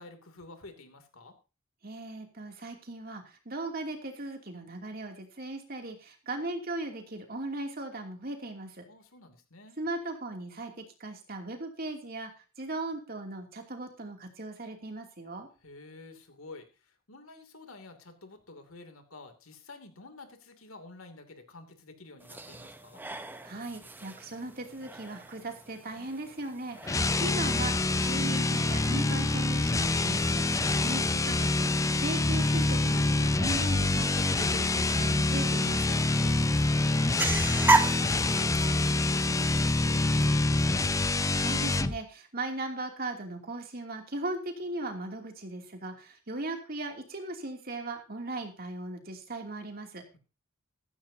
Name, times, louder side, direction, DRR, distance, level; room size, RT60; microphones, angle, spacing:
voice 1, 0.0-1.3 8.9-9.8 15.6-23.0 26.8-27.2 36.2-40.9, left 2 dB, 85° left, 7 dB, 2.9 m, -50 dB
voice 2, 1.8-8.8 9.8-12.3 12.6-15.5 23.4-30.4 30.8-31.7 32.0-36.0 41.4-50.0, right 2 dB, 45° right, 3 dB, 2.8 m, -38 dB
sound 1, 22.2-40.3, right 2 dB, 10° right, 0.8 m, -36 dB
sound 2, 26.8-42.0, left 2 dB, 15° left, 0.5 m, -26 dB
15.5 x 14.0 x 2.8 m, 0.32 s
head